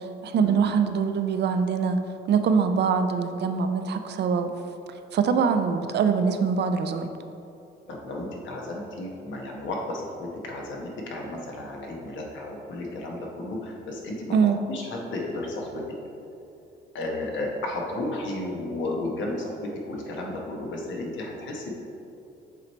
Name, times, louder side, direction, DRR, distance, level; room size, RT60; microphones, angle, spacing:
voice 1, 0.0-2.0 2.3-4.5 5.1-7.1 14.3-14.6, right 6 dB, 60° right, 8 dB, 0.5 m, -23 dB
voice 2, 7.9-15.8 16.9-21.7, left 2 dB, 70° left, -1 dB, 1.2 m, -33 dB
7.5 x 3.2 x 4.2 m, 2.7 s
cardioid pair, 90°, 20 cm